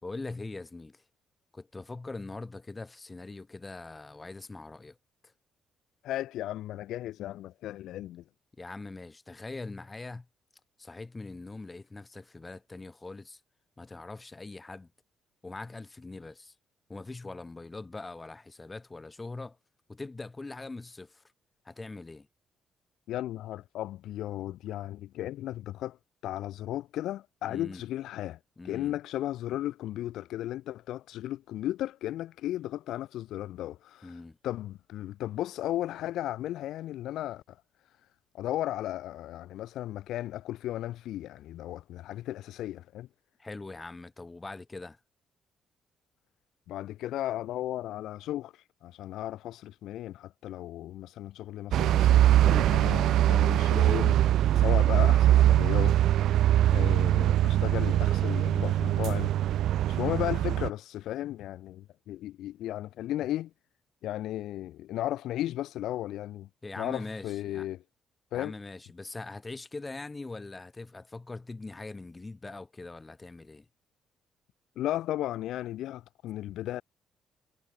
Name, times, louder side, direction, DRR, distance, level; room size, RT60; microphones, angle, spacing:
voice 1, 0.0-1.0 1.5-5.0 8.6-10.3 10.8-13.4 13.8-14.9 15.4-16.5 16.9-19.6 19.9-21.2 21.6-22.3 27.5-27.8 28.6-29.0 34.0-34.4 43.4-45.0 54.4-54.8 66.6-67.7 68.3-73.7, left 3 dB, 20° left, 2.3 m, -42 dB
voice 2, 6.0-8.2 23.1-26.0 26.2-28.4 28.6-37.6 38.3-43.1 46.7-54.2 54.6-56.3 56.7-59.3 59.9-63.5 64.0-66.5 66.8-67.8 68.3-68.5 74.8-76.8, left 13 dB, 85° left, 0.4 m, -35 dB
sound 1, 51.7-60.7, right 12 dB, 80° right, 0.4 m, -22 dB
cardioid pair, 90°, 0 cm